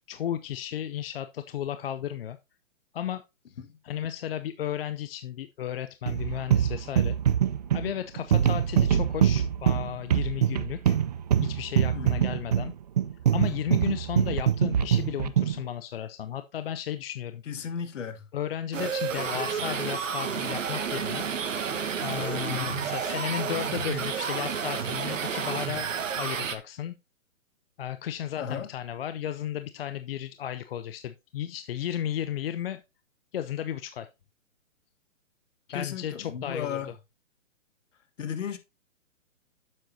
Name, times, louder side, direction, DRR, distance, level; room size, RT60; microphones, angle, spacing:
voice 1, 0.1-2.4 2.9-3.2 3.8-7.2 7.7-11.0 11.4-12.7 13.3-17.7 18.3-21.2 22.0-25.9 26.2-26.9 27.8-32.8 33.3-34.1 35.7-36.9, left 10 dB, 50° left, 0.6 m, -34 dB
sound 1, 6.1-15.6, right 9 dB, 35° right, 0.4 m, -24 dB
voice 2, 11.9-12.3 17.5-18.2 22.5-22.8 28.4-28.7 35.7-36.9 38.2-38.6, left 7 dB, 65° left, 1.5 m, -35 dB
sound 2, 18.7-26.6, right 7 dB, 70° right, 1.4 m, -31 dB
9.1 x 7.6 x 2.7 m
hypercardioid pair, 145°, 39 cm